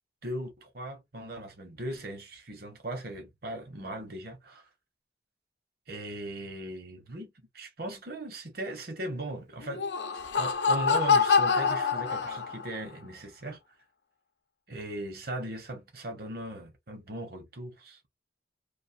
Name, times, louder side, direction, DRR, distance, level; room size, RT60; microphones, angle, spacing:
voice 1, 0.2-4.7 5.9-9.9 10.4-13.6 14.7-18.1, right 1 dB, 60° right, 1.0 m, -38 dB
Laughter, 9.6-12.8, left 5 dB, 70° left, 0.6 m, -25 dB
2.7 x 2.4 x 2.6 m
head